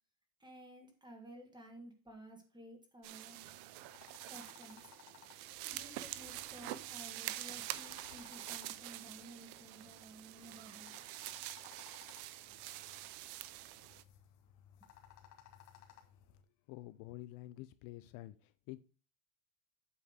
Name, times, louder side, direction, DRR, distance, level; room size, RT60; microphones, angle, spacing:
voice 1, 0.4-3.4 4.2-4.9 5.6-10.9, right 1 dB, 10° right, 1.6 m, -54 dB
sound 1, 3.0-14.0, right 15 dB, 55° right, 0.7 m, -46 dB
sound 2, 3.2-16.4, left 9 dB, 85° left, 1.6 m, -62 dB
voice 2, 16.7-18.8, left 16 dB, 60° left, 0.6 m, -49 dB
8.5 x 3.6 x 6.4 m
supercardioid pair, 135°, 47 cm